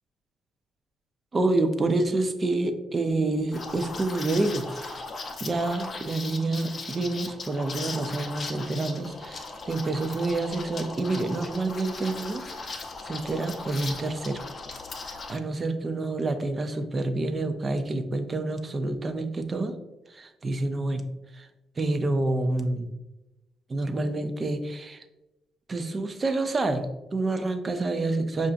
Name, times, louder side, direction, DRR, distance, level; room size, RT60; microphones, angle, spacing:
voice 1, 1.3-5.1 5.4-14.4 15.0-19.8 20.1-21.5 21.8-22.9 23.7-25.1 25.7-28.5, right 2 dB, 35° right, 8 dB, 0.5 m, -28 dB
Liquid, 3.5-15.4, left 3 dB, 45° left, 0.5 m, -38 dB
5.6 x 2.5 x 2.5 m, 0.97 s
cardioid pair, 90°, 0 cm